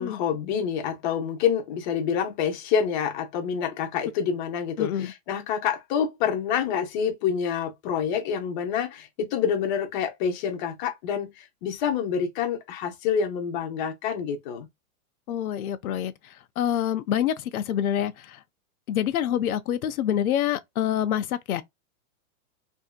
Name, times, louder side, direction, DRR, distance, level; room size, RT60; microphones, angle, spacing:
voice 1, 0.0-14.7, left 7 dB, 35° left, 0.7 m, -27 dB
voice 2, 4.8-5.1 15.3-16.1 16.6-18.4 18.9-21.6, left 10 dB, 90° left, 0.6 m, -26 dB
2.7 x 2.5 x 2.2 m
hypercardioid pair, 155°, 42 cm